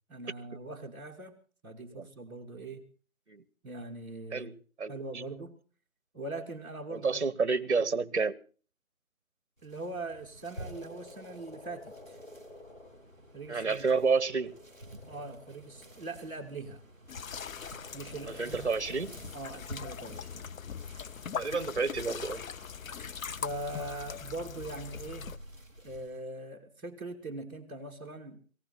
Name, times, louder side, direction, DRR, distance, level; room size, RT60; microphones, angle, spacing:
voice 1, 0.1-1.4 1.6-2.8 3.6-4.6 4.9-5.6 6.1-7.2 9.6-12.2 13.3-13.8 15.1-16.8 17.9-18.7 19.3-20.5 23.3-25.3 25.8-28.4, right 2 dB, 15° right, 1.9 m, -41 dB
voice 2, 4.3-5.2 6.9-8.4 13.5-14.5 18.3-19.1 21.3-22.4, right 4 dB, 55° right, 1.0 m, -30 dB
sound 1, 9.6-26.2, right 1 dB, 10° left, 1.6 m, -51 dB
Frog, 10.5-16.5 17.3-19.8, left 2 dB, 60° left, 6.5 m, -53 dB
sound 2, 17.1-25.4, left 7 dB, 75° left, 0.7 m, -41 dB
18.5 x 18.0 x 4.3 m
figure-of-eight pair, 175°, 41 cm